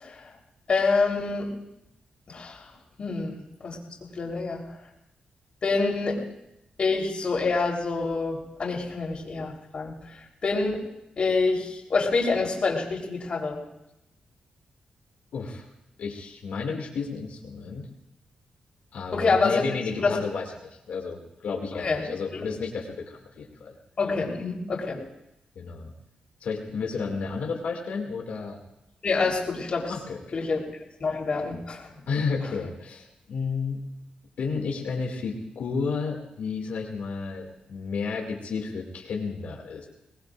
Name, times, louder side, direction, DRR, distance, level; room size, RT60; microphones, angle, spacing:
voice 1, 0.7-1.5 2.3-2.6 3.0-4.6 5.6-6.2 6.8-10.8 11.2-13.6 19.1-19.7 20.0-20.2 21.7-22.1 22.3-22.5 24.0-25.0 29.0-29.9 30.3-30.6 31.0-31.9, left 4 dB, 50° left, -1 dB, 3.9 m, -26 dB
voice 2, 15.3-15.6 16.0-17.9 18.9-23.7 25.6-25.9 26.4-28.6 29.9-30.4 32.1-33.8 34.4-39.9, left 5 dB, 80° left, -1 dB, 2.4 m, -32 dB
23.5 x 19.5 x 2.6 m, 0.87 s
cardioid pair, 100°, 3 cm